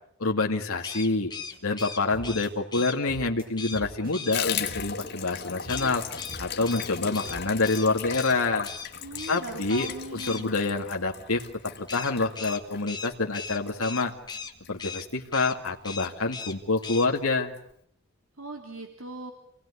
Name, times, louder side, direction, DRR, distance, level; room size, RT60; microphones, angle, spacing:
voice 1, 0.2-1.3 1.6-6.0 6.4-8.7 9.3-11.4 11.8-14.1 14.7-17.5, left 3 dB, 80° left, 2 dB, 2.3 m, -27 dB
sound 1, 0.8-3.0 3.6-3.8 4.1-4.4 5.7-8.3 8.6-8.9 9.2-9.4 9.7-10.4 11.9-14.5 14.8-15.0 15.3-15.6 15.8-16.5 16.8-17.1, left 5 dB, 20° left, 2.0 m, -38 dB
sound 2, 1.5-1.8 2.1-2.5 2.7-3.4 3.7-4.4 4.7-5.1 5.3-6.0 6.3-7.0 7.3-7.4, equal, 40° right, 6.5 m, -44 dB
Water tap faucet / Bathtub (filling or washing), 4.3-15.3 15.6-15.7 16.0-16.1 16.4-16.9 17.2-17.3 17.5-17.6, left 8 dB, 50° left, 2.6 m, -38 dB
voice 2, 9.0-10.5 18.4-19.3, right 2 dB, 65° right, 4 dB, 2.8 m, -39 dB
28.5 x 19.0 x 9.9 m, 0.71 s
head